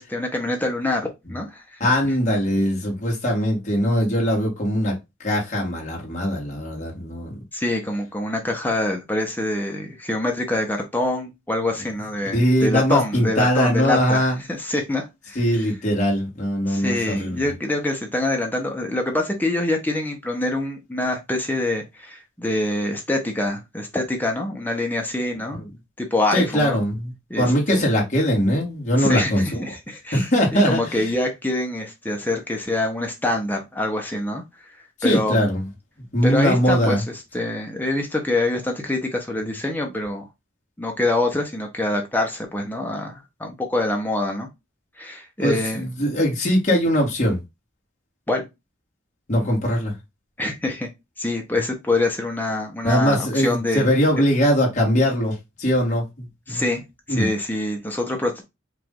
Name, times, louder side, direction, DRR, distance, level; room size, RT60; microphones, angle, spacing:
voice 1, 0.0-2.0 7.5-15.4 16.7-25.6 26.0-26.8 27.3-27.8 29.0-34.7 35.0-35.4 36.2-37.0 37.3-40.3 40.8-44.5 45.0-45.8 48.3-48.4 50.4-50.9 51.2-53.9 56.5-56.8 57.1-58.4, left 2 dB, 10° left, 0.9 m, -25 dB
voice 2, 1.8-5.0 5.2-7.4 12.3-14.4 15.4-17.5 25.6-25.7 26.3-29.6 30.1-31.0 35.0-35.6 36.1-37.0 45.4-47.4 49.3-49.9 52.8-56.6 57.1-57.3, equal, 35° left, 1.8 m, -21 dB
4.9 x 2.6 x 3.7 m
head